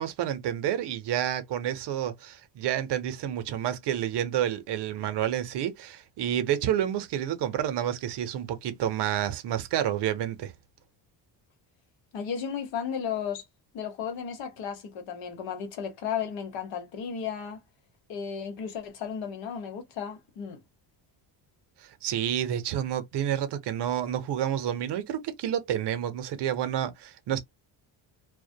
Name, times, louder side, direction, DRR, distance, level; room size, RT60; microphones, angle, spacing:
voice 1, 0.0-10.5 21.8-27.4, right 10 dB, 65° right, 0.7 m, -29 dB
voice 2, 12.1-13.4 13.7-17.6 18.1-20.6, left 7 dB, 80° left, 1.1 m, -34 dB
2.3 x 2.1 x 2.6 m
cardioid pair, 120°, 44 cm